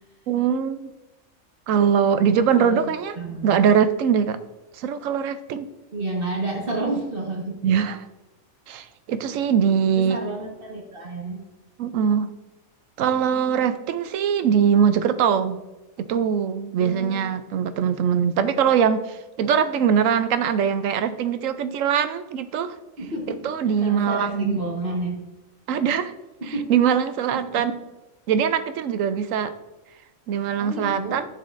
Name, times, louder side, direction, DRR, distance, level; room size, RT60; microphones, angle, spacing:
voice 1, 0.3-0.8 1.7-3.2 3.4-4.4 4.8-5.7 7.6-8.0 8.7-10.2 11.8-12.3 13.0-15.6 16.0-22.7 23.4-24.6 25.7-26.1 26.7-27.7 28.3-29.5 30.3-31.3, right 7 dB, 75° right, 11 dB, 0.9 m, -22 dB
voice 2, 2.2-2.8 3.2-3.5 5.9-7.6 9.9-11.4 16.8-17.3 23.0-25.2 26.4-26.7 27.3-27.6 30.6-31.2, right 2 dB, 40° right, -1 dB, 1.5 m, -30 dB
10.0 x 7.5 x 2.5 m, 1.1 s
omnidirectional pair, 1.4 m